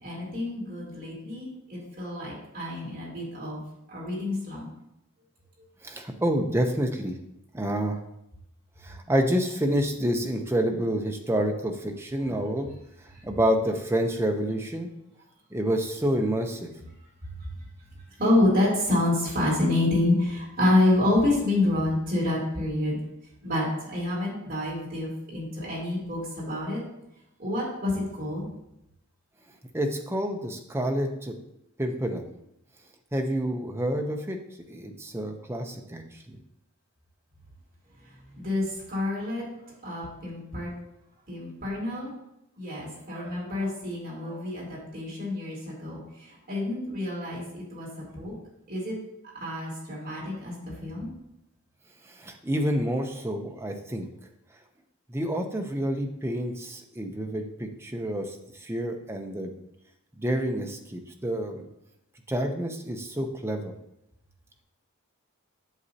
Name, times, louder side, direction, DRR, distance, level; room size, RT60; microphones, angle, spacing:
voice 1, 0.0-3.6 3.9-4.7 12.2-12.3 18.2-23.0 23.4-26.8 27.4-28.5 38.3-39.4 39.8-40.7 41.3-42.1 42.6-48.3 48.7-49.0 49.4-51.1, left 1 dB, 40° right, -6 dB, 3.0 m, -28 dB
voice 2, 5.8-7.2 7.5-8.0 8.8-12.7 13.2-14.9 15.5-16.7 29.7-31.4 31.8-32.2 33.1-34.4 34.7-36.0 36.3-36.4 52.2-54.1 55.1-59.5 60.2-61.7 62.3-63.7, equal, 10° right, 3 dB, 0.6 m, -28 dB
8.1 x 7.0 x 2.8 m, 0.83 s
head